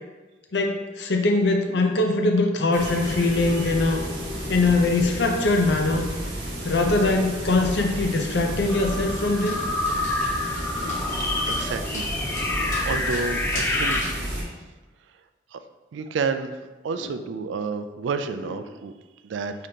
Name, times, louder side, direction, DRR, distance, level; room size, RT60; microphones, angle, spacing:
voice 1, 0.5-4.0 4.5-6.1 6.6-9.6 10.8-11.2 12.3-12.5, left 2 dB, 65° left, 3 dB, 0.6 m, -22 dB
sound 1, 2.7-14.4, right 1 dB, 65° right, 1.1 m, -32 dB
sound 2, 8.7-14.0, left 2 dB, 10° left, 0.3 m, -28 dB
Dog, 9.5-14.3, left 2 dB, 45° left, 1.0 m, -40 dB
voice 2, 11.5-12.1 12.5-14.4 15.5-15.6 15.9-16.5 16.8-18.9 19.2-19.5, right 5 dB, 85° right, 8 dB, 0.3 m, -30 dB
5.2 x 3.7 x 2.8 m, 1.2 s
head